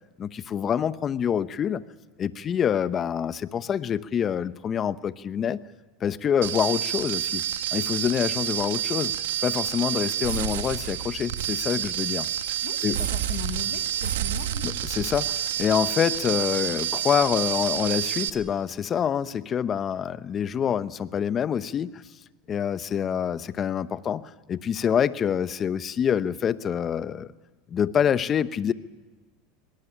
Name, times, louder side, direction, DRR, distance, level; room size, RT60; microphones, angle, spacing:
voice 1, 0.2-1.8 2.2-5.6 6.0-7.4 7.7-9.1 9.4-12.3 12.8-13.0 14.6-22.0 22.5-27.3 27.7-28.7, left 8 dB, 35° left, 15 dB, 0.9 m, -26 dB
sound 1, 6.4-18.3, right 11 dB, 90° right, 1.4 m, -29 dB
voice 2, 12.6-14.6, left 12 dB, 65° left, 9 dB, 1.6 m, -39 dB
21.0 x 18.5 x 10.0 m, 1.3 s
supercardioid pair, 115°, 0 cm